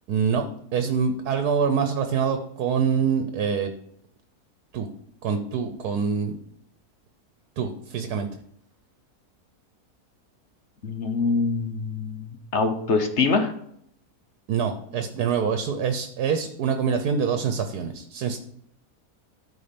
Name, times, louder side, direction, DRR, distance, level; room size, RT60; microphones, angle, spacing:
voice 1, 0.1-0.5 0.7-3.7 4.7-4.9 5.2-6.4 7.6-8.3 14.5-18.4, right 6 dB, 80° right, 7 dB, 1.4 m, -25 dB
voice 2, 10.8-13.5, left 4 dB, 50° left, 6 dB, 1.2 m, -24 dB
13.0 x 4.5 x 5.2 m, 0.69 s
omnidirectional pair, 1.7 m